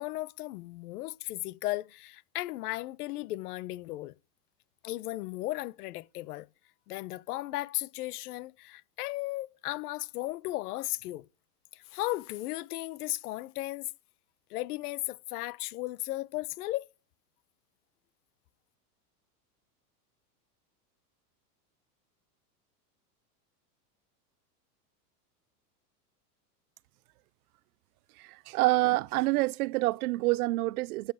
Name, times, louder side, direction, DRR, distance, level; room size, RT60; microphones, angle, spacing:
voice 1, 0.0-4.1 4.8-6.5 6.9-11.3 11.7-13.9 14.5-16.9, left 17 dB, 65° left, 1.0 m, -35 dB
voice 2, 28.2-31.1, right 21 dB, 65° right, 0.5 m, -27 dB
13.5 x 8.5 x 5.0 m
supercardioid pair, 150°, 49 cm